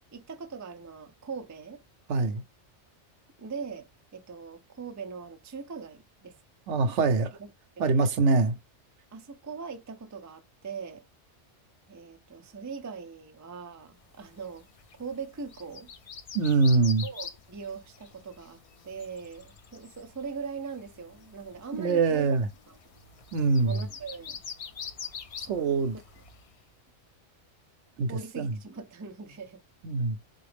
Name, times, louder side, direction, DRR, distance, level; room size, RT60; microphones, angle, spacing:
voice 1, 0.1-1.8 3.4-6.4 7.3-7.5 7.8-8.1 9.1-11.1 11.9-14.7 15.0-15.9 17.0-22.3 22.7-22.8 23.6-24.4 25.5-25.8 28.1-29.6, right 5 dB, 25° right, 0.4 m, -41 dB
voice 2, 2.1-2.4 6.7-7.3 7.8-8.6 16.3-17.0 21.8-22.5 23.3-23.7 25.5-25.9 28.0-28.5 29.8-30.2, right 4 dB, 80° right, 1.0 m, -24 dB
sound 1, 14.1-26.6, left 6 dB, 65° left, 0.3 m, -45 dB
3.9 x 2.4 x 3.2 m
omnidirectional pair, 1.2 m